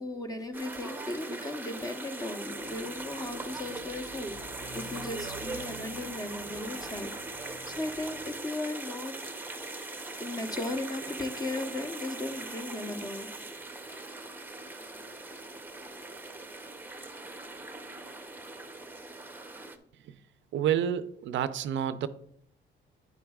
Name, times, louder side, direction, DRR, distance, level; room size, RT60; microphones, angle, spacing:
voice 1, 0.0-4.4 4.7-9.1 9.6-13.3 13.9-14.2, left 2 dB, 20° left, 0.9 m, -37 dB
sound 1, 0.5-19.8, right 2 dB, 10° right, 0.8 m, -41 dB
Motorcycle, 2.4-8.4, equal, 60° left, 1.2 m, -50 dB
voice 2, 20.5-22.1, right 9 dB, 70° right, 0.5 m, -29 dB
9.4 x 7.8 x 2.4 m
cardioid pair, 90°, 20 cm